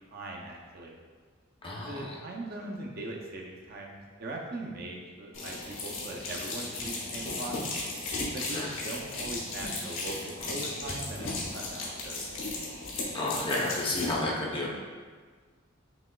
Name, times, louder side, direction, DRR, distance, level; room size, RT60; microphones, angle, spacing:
voice 1, 0.1-1.0 1.9-5.5 5.8-7.6 8.3-12.2, right 2 dB, 45° right, -1 dB, 0.5 m, -40 dB
voice 2, 1.6-2.0 8.5-8.7 13.1-14.7, left 2 dB, 25° left, -3 dB, 0.5 m, -31 dB
sound 1, 5.3-14.1, left 2 dB, 70° left, 1.0 m, -36 dB
5.9 x 3.0 x 2.2 m, 1.5 s
head